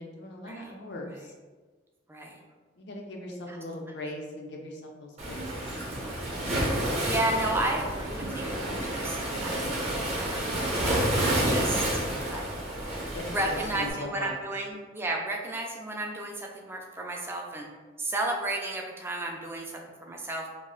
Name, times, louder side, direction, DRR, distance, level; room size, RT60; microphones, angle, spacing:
voice 1, 0.0-1.3 2.8-5.8 13.1-14.4, left 1 dB, 65° left, 1 dB, 0.5 m, -39 dB
Waves surf, 5.2-13.9, right 1 dB, 40° right, 0.7 m, -29 dB
voice 2, 6.7-12.5 13.3-17.7 18.0-20.5, right 1 dB, 15° right, 1 dB, 0.3 m, -33 dB
2.4 x 2.0 x 3.7 m, 1.3 s
head